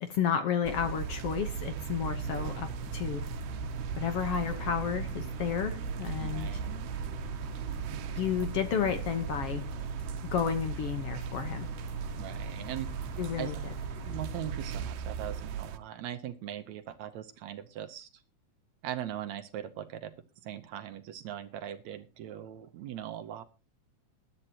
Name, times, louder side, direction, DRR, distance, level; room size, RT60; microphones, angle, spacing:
voice 1, 0.0-3.3 4.0-6.5 8.2-9.7 10.3-11.7 13.2-13.6, left 8 dB, 60° left, 8 dB, 1.8 m, -31 dB
sound 1, 0.6-15.8, right 8 dB, 90° right, 2.5 m, -38 dB
sound 2, 2.0-14.9, left 1 dB, 75° left, 3.1 m, -43 dB
voice 2, 6.2-6.8 12.2-12.9 13.4-13.5 14.0-18.2 18.8-20.1 20.4-23.4, right 11 dB, 70° right, 10 dB, 2.1 m, -40 dB
21.0 x 9.8 x 2.9 m, 0.29 s
omnidirectional pair, 3.6 m